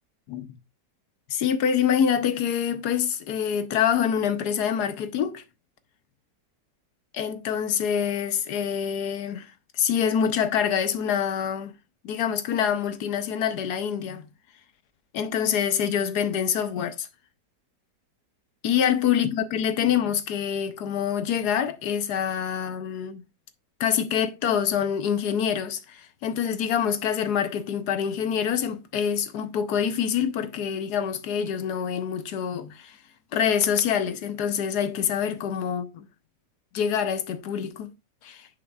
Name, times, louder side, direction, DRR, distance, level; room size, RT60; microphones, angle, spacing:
voice 1, 1.3-5.4 7.1-9.5 9.8-11.7 12.0-14.2 15.1-17.1 18.6-23.2 23.8-33.0 33.3-36.0 36.7-37.9 38.2-38.5, left 8 dB, 70° left, 1.3 m, -26 dB
9.8 x 5.4 x 2.3 m
omnidirectional pair, 1.9 m